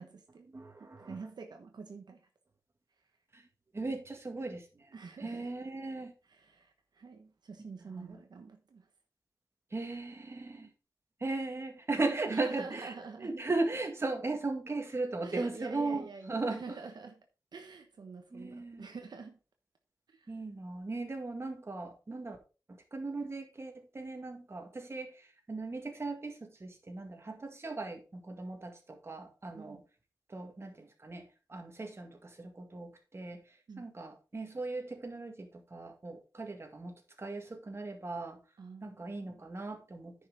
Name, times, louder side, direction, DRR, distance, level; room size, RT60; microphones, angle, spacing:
voice 1, 0.0-0.5 0.8-2.3 4.9-5.5 6.2-8.9 12.3-13.3 15.2-17.2 17.5-19.4 20.1-20.3 29.5-29.8 33.7-33.9 38.6-39.4, right 4 dB, 75° right, 1.1 m, -47 dB
voice 2, 0.5-1.2 3.3-3.4 3.7-4.7 5.2-6.1 7.8-8.2 9.7-10.7 11.2-16.8 18.3-18.9 20.3-22.4 22.9-29.8 30.3-31.2 31.5-33.4 33.8-38.4 38.8-40.1, right 3 dB, 35° right, 2.0 m, -37 dB
10.0 x 5.8 x 3.9 m
wide cardioid pair, 100°, 7 cm